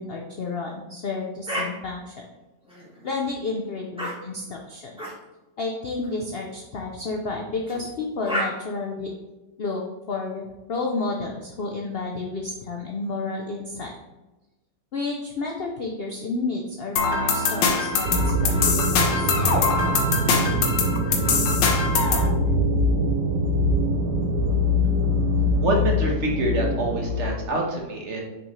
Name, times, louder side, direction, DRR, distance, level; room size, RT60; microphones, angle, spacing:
voice 1, 0.0-2.2 3.0-4.9 5.6-9.1 9.6-9.8 10.1-13.9 14.9-19.5, left 3 dB, 65° left, 1 dB, 0.6 m, -31 dB
sound 1, 1.5-1.7 2.6-3.2 4.0-4.1 5.0-5.1 6.0-6.2 7.7-7.8 8.2-8.5, equal, 5° right, 1.7 m, -30 dB
sound 2, 17.0-22.3, left 5 dB, 85° left, 1.5 m, -23 dB
sound 3, 18.0-27.3, left 1 dB, 80° right, 1.4 m, -23 dB
voice 2, 25.6-28.2, right 2 dB, 45° right, 0 dB, 1.3 m, -25 dB
6.1 x 5.2 x 3.1 m, 1.1 s
omnidirectional pair, 1.9 m